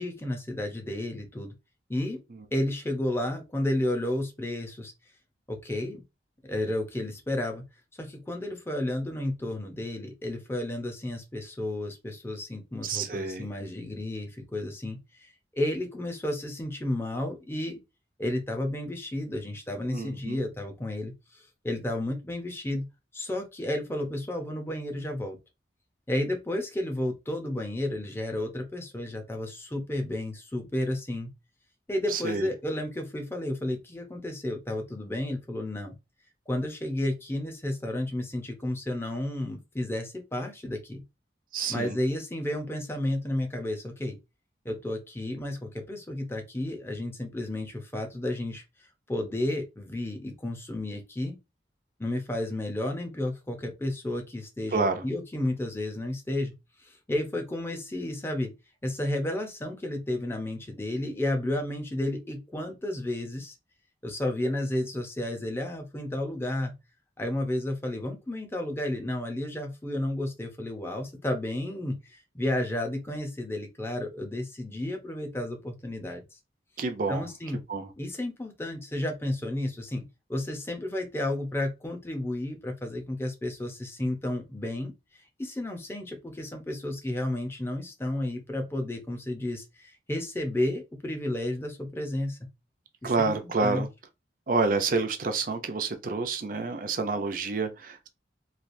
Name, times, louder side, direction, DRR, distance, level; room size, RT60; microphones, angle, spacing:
voice 1, 0.0-1.5 1.9-2.2 2.5-4.9 5.5-6.0 6.5-7.6 8.0-17.8 18.2-22.9 23.1-25.4 26.1-31.3 31.9-36.0 36.5-41.0 41.7-44.2 44.6-51.4 52.0-56.5 56.8-58.5 58.8-63.5 64.0-66.7 67.2-76.4 77.1-77.6 78.0-80.0 80.3-92.5 93.0-93.8, left 1 dB, 15° left, 0.6 m, -32 dB
voice 2, 12.8-13.5 19.9-20.4 32.1-32.5 41.5-42.0 54.7-55.0 76.8-77.3 77.7-77.9 93.0-93.9 94.5-98.1, right 4 dB, 50° right, 0.5 m, -28 dB
3.2 x 2.4 x 2.5 m
head